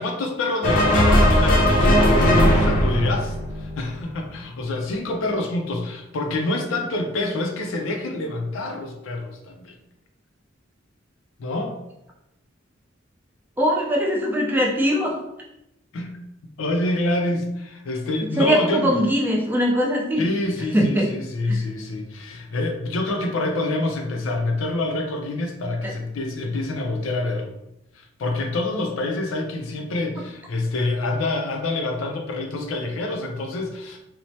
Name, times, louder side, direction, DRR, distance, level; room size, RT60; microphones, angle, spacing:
voice 1, 0.0-9.8 11.4-11.8 15.9-16.1 16.6-19.0 20.2-27.5 27.9-34.0, left 2 dB, 85° left, 3 dB, 0.4 m, -27 dB
sound 1, 0.6-4.1, equal, 45° left, 0.6 m, -18 dB
voice 2, 13.6-15.2 18.4-20.2 20.7-21.1 21.5-21.6, equal, 10° right, -2 dB, 0.5 m, -21 dB
3.0 x 2.0 x 2.7 m, 0.86 s
head